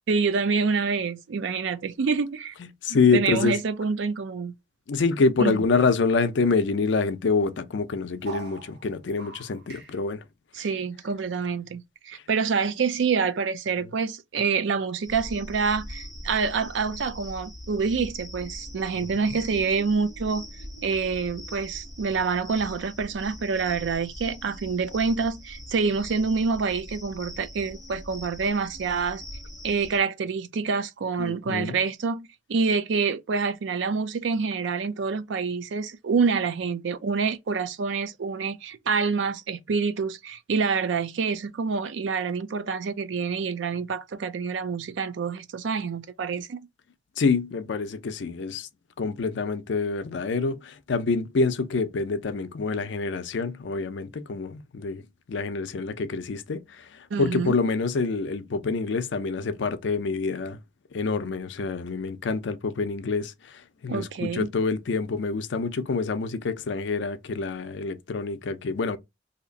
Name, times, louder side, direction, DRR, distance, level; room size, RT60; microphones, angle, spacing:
voice 1, 0.1-2.5 2.9-4.5 5.4-5.6 10.5-20.4 20.8-29.2 29.6-46.7 57.1-57.5 63.9-64.5, right 5 dB, 85° right, 0.4 m, -27 dB
voice 2, 2.8-3.6 4.9-10.2 10.6-10.7 19.0-19.4 31.2-31.8 47.2-48.7 49.0-55.0 55.3-56.6 57.2-60.6 60.9-63.3 63.8-69.0, left 4 dB, 75° left, 0.5 m, -26 dB
sound 1, 5.7-6.6 6.9-7.0 7.2-7.7 8.2-10.0, right 5 dB, 60° right, 1.0 m, -44 dB
sound 2, 15.0-30.0, equal, ahead, 1.0 m, -42 dB
2.8 x 2.4 x 3.9 m
head